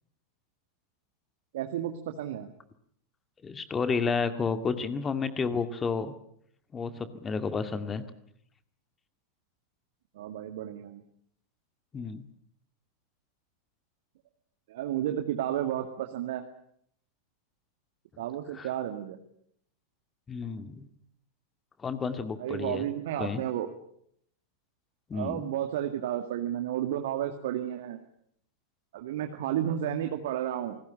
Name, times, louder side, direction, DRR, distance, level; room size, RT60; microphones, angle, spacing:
voice 1, 1.5-2.5 10.2-11.0 14.7-16.4 18.2-19.2 22.4-23.7 25.1-28.0 28.9-30.8, right 11 dB, 55° right, 6 dB, 2.0 m, -32 dB
voice 2, 3.4-6.1 6.7-8.1 11.9-12.3 18.5-18.7 20.3-20.9 21.8-22.9 23.2-23.4 25.1-25.5, left 5 dB, 20° left, 10 dB, 2.0 m, -31 dB
28.0 x 20.0 x 8.8 m, 0.70 s
figure-of-eight pair, 90°, 0 cm